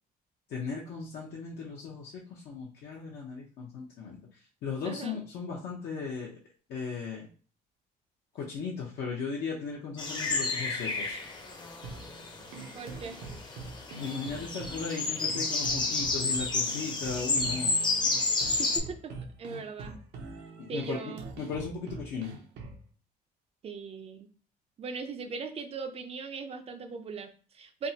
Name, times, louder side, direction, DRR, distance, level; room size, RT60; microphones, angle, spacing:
voice 1, 0.5-4.2 4.6-6.4 6.7-7.3 8.3-11.2 14.0-17.8 20.6-21.0 21.4-22.3, left 5 dB, 70° left, -3 dB, 0.7 m, -37 dB
voice 2, 4.8-5.2 12.7-13.2 18.6-19.1 19.4-20.0 20.7-21.3 23.6-24.3 24.8-27.9, right 5 dB, 35° right, 8 dB, 0.4 m, -39 dB
sound 1, 10.0-18.8, left 3 dB, 25° left, 0.6 m, -31 dB
sound 2, 11.8-22.8, right 3 dB, 80° right, 0.7 m, -44 dB
3.4 x 2.1 x 2.7 m, 0.41 s
cardioid pair, 110°, 17 cm